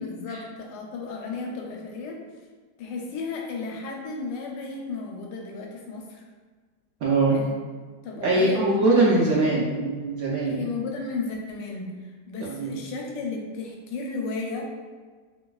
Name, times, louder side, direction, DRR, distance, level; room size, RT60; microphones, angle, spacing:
voice 1, 0.0-2.2 2.8-6.2 7.3-7.5 8.0-8.9 10.4-14.7, left 4 dB, 85° left, 0 dB, 1.2 m, -34 dB
voice 2, 7.0-7.4 8.2-10.7 12.4-12.8, right 2 dB, 70° right, -4 dB, 0.9 m, -22 dB
3.2 x 3.0 x 2.3 m, 1.5 s
omnidirectional pair, 1.9 m